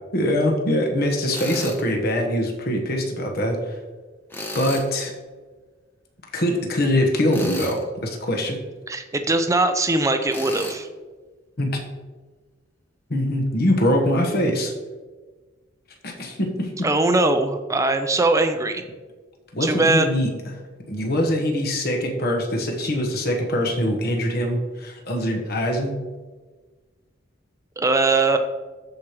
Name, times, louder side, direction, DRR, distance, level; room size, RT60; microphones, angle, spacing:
voice 1, 0.1-3.7 4.5-5.1 6.3-8.6 11.6-11.8 13.1-14.7 16.0-16.7 19.5-20.3 20.9-25.9, left 1 dB, 50° left, 1 dB, 1.2 m, -23 dB
Tools, 1.3-1.8 4.3-4.9 7.3-7.8 10.3-10.8, left 1 dB, 10° left, 0.9 m, -32 dB
voice 2, 8.9-10.9 16.8-18.8 19.6-20.1 27.8-28.4, right 2 dB, 15° right, 7 dB, 0.5 m, -20 dB
13.5 x 5.0 x 3.0 m, 1.4 s
head